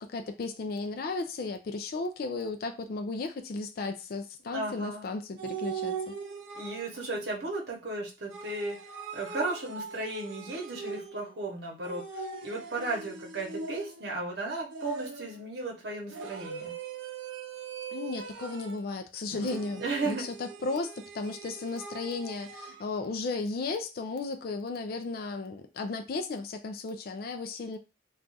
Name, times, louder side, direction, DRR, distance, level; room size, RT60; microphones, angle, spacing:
voice 1, 0.0-6.1 17.9-27.8, left 3 dB, 50° left, 0.3 m, -35 dB
voice 2, 4.5-5.1 6.5-8.8 9.1-16.7 19.7-20.3, right 2 dB, 55° right, 0.9 m, -35 dB
sound 1, 5.4-7.1 8.3-11.4 11.8-14.2 14.7-15.4 16.1-18.9 19.3-22.8, right 5 dB, 85° right, 0.5 m, -41 dB
2.4 x 2.4 x 3.9 m
head